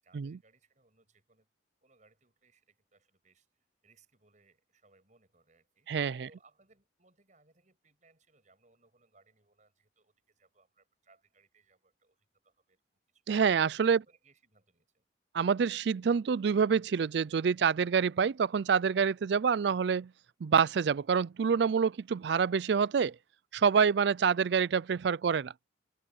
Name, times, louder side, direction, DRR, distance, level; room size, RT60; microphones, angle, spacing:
voice 1, 0.0-1.5 1.8-5.9 6.2-12.8 13.1-13.2 13.9-15.0 23.9-24.0, right 3 dB, 40° right, 7.2 m, -67 dB
voice 2, 5.9-6.3 13.3-14.0 15.3-20.1 20.4-23.2 23.5-25.5, right 6 dB, 60° right, 0.4 m, -27 dB
head